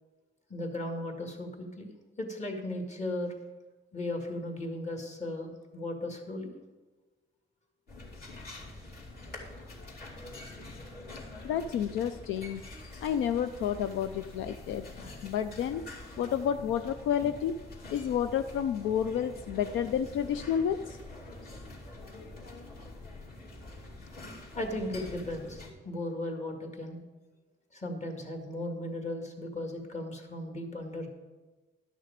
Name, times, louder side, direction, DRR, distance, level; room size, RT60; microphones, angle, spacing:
voice 1, 0.5-1.9 2.2-3.3 3.9-6.5 24.5-27.0 27.7-31.1, left 1 dB, 35° left, 3 dB, 1.9 m, -36 dB
sound 1, 7.9-25.7, left 2 dB, 50° left, 2.8 m, -46 dB
voice 2, 11.4-12.6 13.0-14.8 15.2-15.8 16.2-17.5 17.9-21.0, left 9 dB, 80° left, 10 dB, 0.4 m, -30 dB
11.5 x 6.4 x 5.1 m, 1.2 s
cardioid pair, 90°, 20 cm